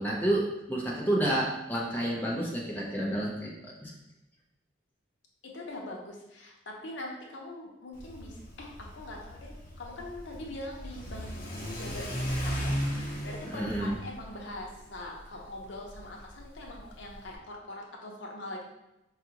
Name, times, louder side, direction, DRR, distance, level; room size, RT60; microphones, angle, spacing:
voice 1, 0.0-3.9 13.4-13.9, right 1 dB, 10° left, -4 dB, 0.6 m, -30 dB
voice 2, 5.4-18.6, left 1 dB, 75° left, 0 dB, 0.7 m, -43 dB
Car / Accelerating revving vroom, 7.9-17.3, equal, 45° left, 0.9 m, -37 dB
4.8 x 2.4 x 2.9 m, 0.93 s
head